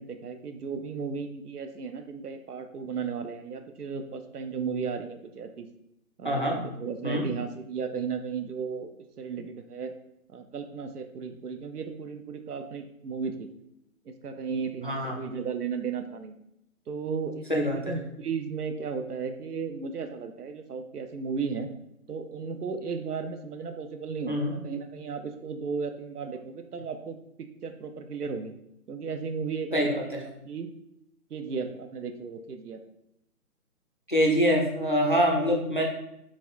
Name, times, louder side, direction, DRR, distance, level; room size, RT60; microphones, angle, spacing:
voice 1, 0.0-5.7 6.2-8.9 9.2-9.9 10.3-13.5 14.1-16.3 16.9-21.7 22.1-28.5 28.9-30.7 31.3-32.8, right 5 dB, 85° right, 7 dB, 0.7 m, -35 dB
voice 2, 6.2-6.6 7.0-7.3 14.8-15.1 17.5-18.0 24.3-24.6 29.7-30.2 34.1-35.9, equal, 35° left, 0 dB, 0.4 m, -25 dB
4.1 x 3.6 x 2.6 m, 0.81 s
figure-of-eight pair, 160°, 45 cm